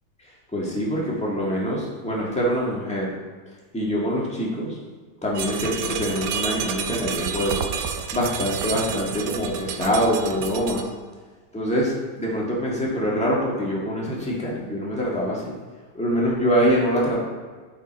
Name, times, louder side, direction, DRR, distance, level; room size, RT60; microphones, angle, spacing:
voice 1, 0.2-3.1 3.7-4.8 5.2-7.7 8.1-10.9 11.5-15.5 15.9-17.2, equal, 5° left, -4 dB, 1.4 m, -24 dB
sound 1, 5.3-10.8, right 7 dB, 80° right, 0.7 m, -30 dB
9.8 x 4.4 x 4.4 m, 1.5 s
omnidirectional pair, 2.3 m